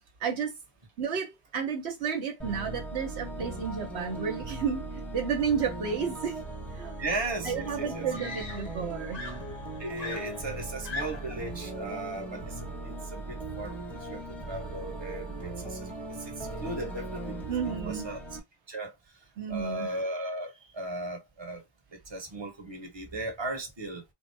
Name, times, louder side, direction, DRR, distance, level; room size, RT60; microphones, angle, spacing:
voice 1, 0.2-0.5 1.0-6.4 6.7-7.0 7.4-9.2 17.5-18.1 19.4-19.9, right 6 dB, 70° right, 1.0 m, -32 dB
sound 1, 2.4-18.4, right 2 dB, ahead, 0.8 m, -39 dB
voice 2, 7.0-8.1 9.8-17.6 17.8-18.2 18.7-21.6 21.9-24.0, right 2 dB, 25° right, 1.1 m, -37 dB
Screaming, 8.1-8.9 9.1-11.4 12.4-12.7, left 3 dB, 45° left, 0.7 m, -40 dB
3.9 x 2.1 x 3.2 m
omnidirectional pair, 1.2 m